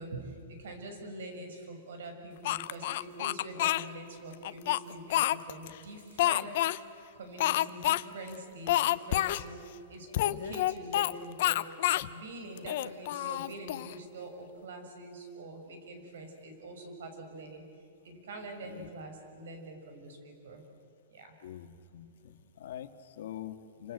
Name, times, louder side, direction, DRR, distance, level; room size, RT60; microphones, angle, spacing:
voice 1, 0.0-6.7 7.1-9.6 9.9-11.6 12.1-17.6 18.0-20.6 21.1-21.3, right 1 dB, 75° right, 5 dB, 6.5 m, -44 dB
Speech, 2.4-3.8 4.4-5.7 6.2-6.8 7.4-8.0 8.3-8.4 8.7-9.4 10.1-11.1 11.4-12.1 12.6-13.9, left 15 dB, 50° left, 0.7 m, -28 dB
voice 2, 21.4-23.9, left 11 dB, 65° left, 8 dB, 1.9 m, -44 dB
28.5 x 26.0 x 8.1 m, 2.5 s
supercardioid pair, 165°, 0 cm